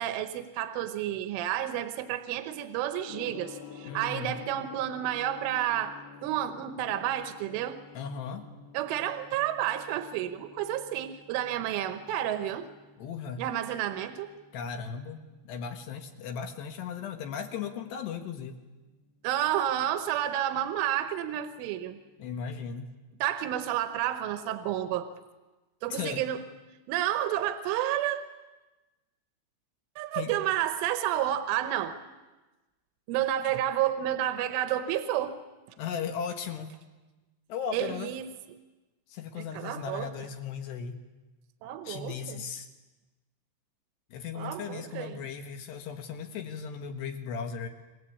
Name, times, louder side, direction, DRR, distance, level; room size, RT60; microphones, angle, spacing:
voice 1, 0.0-7.8 8.7-12.7 13.4-14.3 19.2-22.0 23.2-25.1 25.8-26.4 26.9-28.2 30.0-32.0 33.1-35.4 35.7-35.8 37.7-38.3 39.4-40.1 41.6-42.4 44.4-45.3, right 12 dB, 80° right, 9 dB, 3.6 m, -30 dB
Gong, 3.1-22.1, left 6 dB, 85° left, 1.4 m, -52 dB
voice 2, 3.8-4.3 7.9-8.5 13.0-13.4 14.5-18.6 22.2-22.9 25.9-26.2 30.1-30.3 35.8-36.7 37.5-38.1 39.1-41.0 41.8-42.7 44.1-47.7, left 7 dB, 65° left, 6 dB, 3.4 m, -37 dB
29.5 x 22.0 x 8.5 m, 1.1 s
omnidirectional pair, 5.7 m